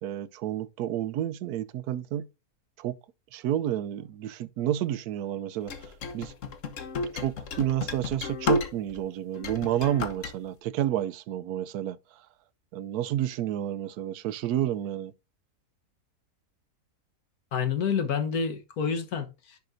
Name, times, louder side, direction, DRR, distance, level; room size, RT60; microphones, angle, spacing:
voice 1, 0.0-2.3 2.8-3.0 3.3-6.3 7.1-12.0 12.7-15.1, right 11 dB, 85° right, 1.1 m, -30 dB
sound 1, 5.7-9.0 9.3-10.3, left 4 dB, 60° left, 1.4 m, -32 dB
voice 2, 17.5-19.6, left 6 dB, 80° left, 1.7 m, -28 dB
10.5 x 5.9 x 2.6 m
omnidirectional pair, 1.6 m